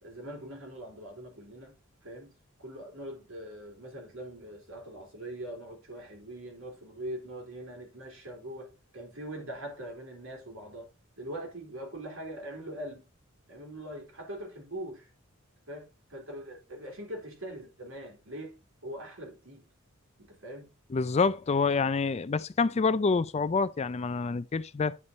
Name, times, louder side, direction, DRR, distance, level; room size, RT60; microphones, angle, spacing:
voice 1, 0.0-1.7 2.0-2.3 2.6-10.9 11.2-13.0 13.5-15.1 15.7-18.6 18.8-19.7 20.2-20.7, right 1 dB, 70° right, 3.9 m, -42 dB
voice 2, 20.9-25.0, left 4 dB, 30° left, 0.4 m, -27 dB
9.7 x 5.4 x 4.1 m
head